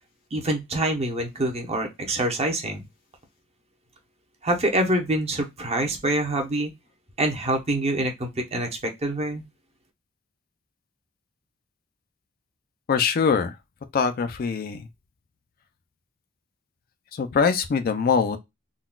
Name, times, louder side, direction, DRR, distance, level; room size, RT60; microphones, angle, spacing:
voice 1, 0.3-2.8 4.4-6.7 7.2-9.4, right 1 dB, 30° right, 0.8 m, -25 dB
voice 2, 12.9-13.5 13.9-14.9 17.1-18.4, left 5 dB, 45° left, 0.4 m, -23 dB
3.8 x 2.3 x 2.2 m
head